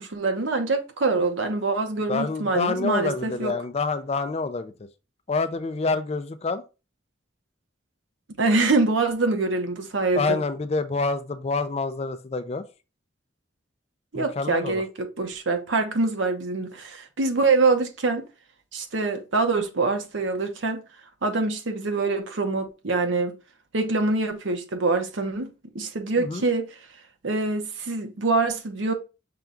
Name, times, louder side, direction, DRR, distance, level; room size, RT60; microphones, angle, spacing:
voice 1, 0.0-3.5 8.4-10.4 14.1-18.3 18.7-20.8 21.2-23.4 23.7-25.5 25.7-26.7 27.2-28.9, right 3 dB, 80° right, 0.9 m, -25 dB
voice 2, 2.1-4.7 5.3-6.6 10.1-12.6 14.1-14.8 26.2-26.4, left 3 dB, 35° left, 0.4 m, -27 dB
5.8 x 2.3 x 3.7 m
head